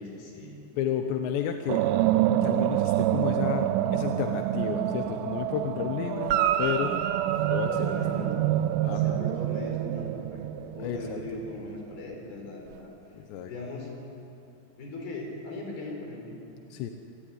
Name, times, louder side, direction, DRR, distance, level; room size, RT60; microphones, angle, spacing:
voice 1, 0.0-0.6 7.7-8.5 8.8-12.9 13.5-13.9 14.8-16.4, left 2 dB, 60° left, 1 dB, 6.3 m, -39 dB
voice 2, 0.8-1.8 2.4-7.0 7.5-7.7 8.8-9.2 10.8-11.2 13.1-13.5 16.7-16.9, left 9 dB, 90° left, 5 dB, 3.3 m, -32 dB
sound 1, 1.7-11.8, right 13 dB, 90° right, 2.9 m, -27 dB
Guitar, 6.2-8.8 12.7-12.8, right 9 dB, 70° right, 2.2 m, -30 dB
26.0 x 19.0 x 9.4 m, 2.8 s
omnidirectional pair, 4.9 m